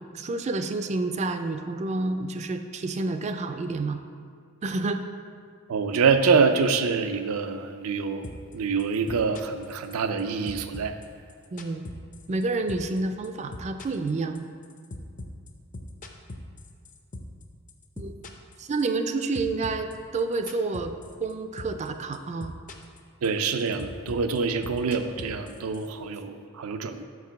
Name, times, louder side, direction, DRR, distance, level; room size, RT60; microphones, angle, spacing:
voice 1, 0.0-4.0 4.6-5.0 11.5-11.9 12.3-14.4 18.0-18.1 18.6-20.9 21.2-22.5, right 3 dB, 30° right, 7 dB, 0.4 m, -29 dB
voice 2, 5.7-8.3 8.5-10.9 23.2-27.0, right 5 dB, 85° right, 8 dB, 0.5 m, -25 dB
sound 1, 8.2-8.5 8.8-10.2 10.5-12.4 12.7-13.0 13.2-17.4 17.7-19.1 19.3-21.3 21.6-21.9 22.1-23.0 23.2-25.9, left 2 dB, 40° left, 0.6 m, -40 dB
6.2 x 4.7 x 5.8 m, 2.1 s
head